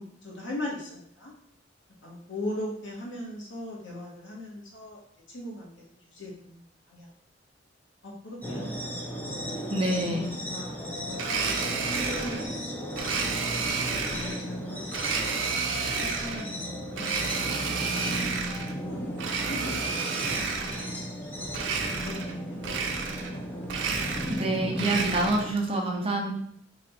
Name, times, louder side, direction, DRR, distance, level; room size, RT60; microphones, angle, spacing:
voice 1, 0.0-1.3 2.0-5.0 5.3-5.7 6.1-6.6 6.9-7.1 8.0-9.2 10.0-13.4 14.0-15.5 16.0-17.2 17.8-20.1 20.8-21.1 21.3-21.5 22.0-22.6, left 1 dB, 75° left, -3 dB, 1.3 m, -40 dB
sound 1, 8.4-25.5, equal, 10° left, 0.6 m, -35 dB
voice 2, 9.7-10.3 24.3-26.3, right 2 dB, 30° right, 0 dB, 0.7 m, -27 dB
Domestic sounds home sounds, 11.1-12.5 13.0-14.4 14.9-16.5 16.9-18.7 19.1-20.9 21.5-22.3 22.6-23.4 23.6-25.5, right 5 dB, 80° right, 0.5 m, -31 dB
3.1 x 2.5 x 4.1 m, 0.65 s
head